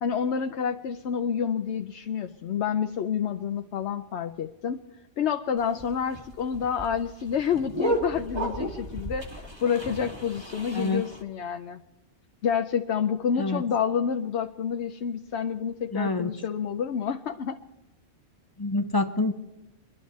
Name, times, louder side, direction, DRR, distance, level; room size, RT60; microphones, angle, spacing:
voice 1, 0.0-4.8 5.2-11.8 12.4-17.6, left 7 dB, 65° left, 6 dB, 0.9 m, -29 dB
sound 1, 5.6-11.2, equal, 20° right, 2.0 m, -33 dB
voice 2, 10.7-11.0 13.4-13.6 15.9-16.3 18.6-19.3, left 2 dB, 20° left, 7 dB, 0.9 m, -26 dB
23.0 x 12.0 x 4.2 m, 0.99 s
omnidirectional pair, 1.3 m